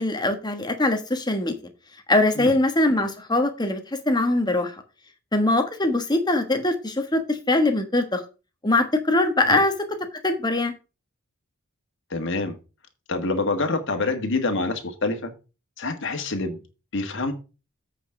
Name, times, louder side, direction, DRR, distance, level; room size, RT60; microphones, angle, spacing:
voice 1, 0.0-1.5 2.1-4.8 5.3-8.2 8.6-10.0 10.2-10.7, left 2 dB, 20° left, 6 dB, 1.3 m, -22 dB
voice 2, 12.1-12.6 13.1-15.3 15.8-16.6 16.9-17.3, left 3 dB, 60° left, 5 dB, 1.6 m, -26 dB
8.3 x 5.2 x 5.9 m, 0.31 s
head